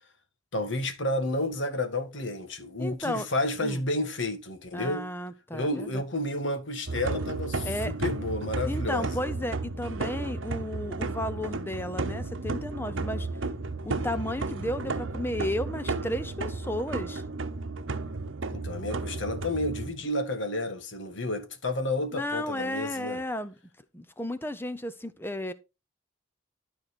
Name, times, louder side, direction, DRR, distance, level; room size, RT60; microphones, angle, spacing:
voice 1, 0.5-5.1 5.5-9.1 18.5-23.2, left 1 dB, 65° left, 1.8 m, -31 dB
voice 2, 2.8-3.3 3.6-3.8 4.7-6.0 7.6-7.9 8.7-13.3 13.8-17.2 22.1-23.5 23.9-25.5, left 1 dB, 10° left, 0.8 m, -33 dB
sound 1, 6.9-19.9, right 3 dB, 75° right, 0.9 m, -33 dB
12.5 x 4.7 x 4.3 m
head